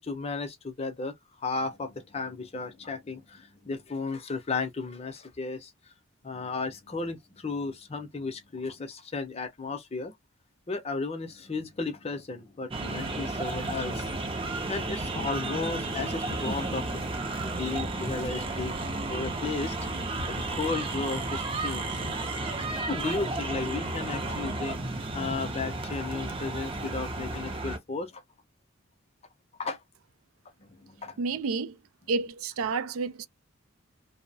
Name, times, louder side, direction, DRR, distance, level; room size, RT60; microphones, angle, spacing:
voice 1, 0.0-5.7 6.2-10.1 10.7-14.1 14.4-17.0 17.4-19.8 20.1-24.8 25.1-28.2 29.6-29.8 30.6-31.2, left 4 dB, 30° left, 0.5 m, -34 dB
sound 1, 12.7-27.8, right 2 dB, 25° right, 0.5 m, -33 dB
voice 2, 31.2-31.8 32.1-33.3, right 4 dB, 80° right, 0.4 m, -30 dB
2.7 x 2.0 x 2.6 m
head